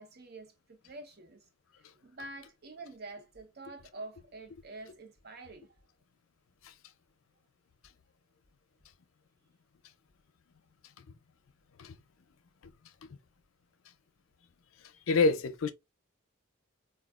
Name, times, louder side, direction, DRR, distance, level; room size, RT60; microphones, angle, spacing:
voice 1, 0.0-1.4 2.0-5.7, right 2 dB, 50° right, 0.8 m, -47 dB
voice 2, 15.1-15.7, left 3 dB, 85° left, 0.5 m, -27 dB
4.4 x 2.3 x 2.3 m
head